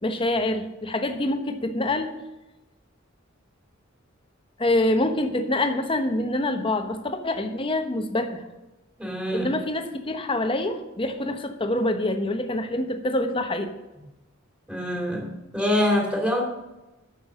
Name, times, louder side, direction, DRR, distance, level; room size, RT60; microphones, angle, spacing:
voice 1, 0.0-2.1 4.6-8.4 9.3-13.7, left 1 dB, 25° left, 7 dB, 1.0 m, -26 dB
voice 2, 9.0-9.5 14.7-16.4, left 1 dB, 5° right, 0 dB, 2.6 m, -25 dB
9.6 x 6.8 x 6.5 m, 1.0 s
head